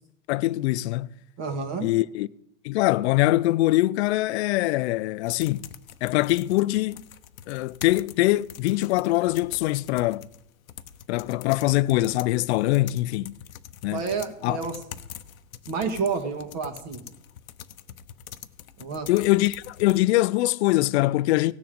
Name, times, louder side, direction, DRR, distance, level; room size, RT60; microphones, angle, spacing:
voice 1, 0.3-1.1 1.8-2.3 2.6-5.7 6.0-7.0 7.5-10.3 11.1-13.4 13.8-14.0 14.4-14.6 19.1-21.5, left 17 dB, 55° left, 0.5 m, -23 dB
voice 2, 1.4-1.9 13.9-14.8 15.7-17.0 18.8-19.1, right 5 dB, 40° right, 1.9 m, -29 dB
sound 1, 5.3-20.0, left 10 dB, 85° left, 0.8 m, -45 dB
17.0 x 6.8 x 5.1 m
hypercardioid pair, 115°, 40 cm